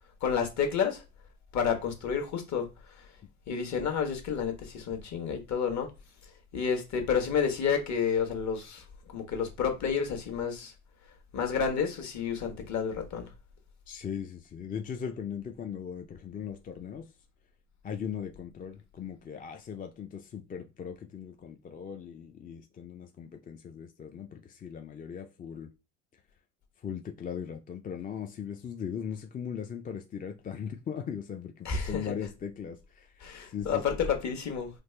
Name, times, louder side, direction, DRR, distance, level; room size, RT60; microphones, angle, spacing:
voice 1, 0.2-1.0 1.5-2.7 3.5-5.9 6.5-8.8 9.1-10.7 11.3-13.2 31.6-32.1 33.2-34.7, left 6 dB, 45° left, 1.3 m, -30 dB
voice 2, 13.9-17.1 17.8-25.7 26.8-33.8, left 7 dB, 25° left, 0.4 m, -39 dB
3.3 x 2.4 x 3.2 m
hypercardioid pair, 75°, 38 cm